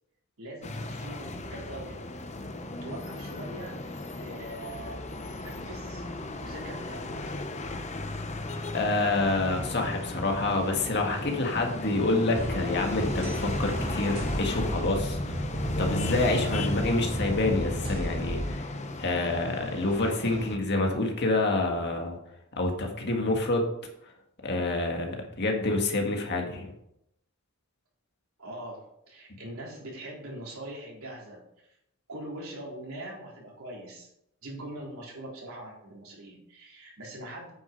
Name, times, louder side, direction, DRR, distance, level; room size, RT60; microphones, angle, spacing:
voice 1, 0.4-2.0 2.8-3.8 4.2-5.0 5.4-6.1 6.4-7.4 8.9-9.3 28.4-31.4 32.1-34.1 34.4-37.5, right 1 dB, 75° right, -3 dB, 4.0 m, -42 dB
sound 1, 0.6-20.6, left 2 dB, 30° left, 0.8 m, -36 dB
voice 2, 8.7-15.4 15.8-18.7 19.0-22.2 22.6-23.6 24.4-26.7, left 2 dB, 50° left, 2 dB, 1.8 m, -27 dB
sound 2, 12.3-18.6, equal, 45° right, 2.4 m, -33 dB
9.2 x 6.6 x 5.2 m, 0.77 s
head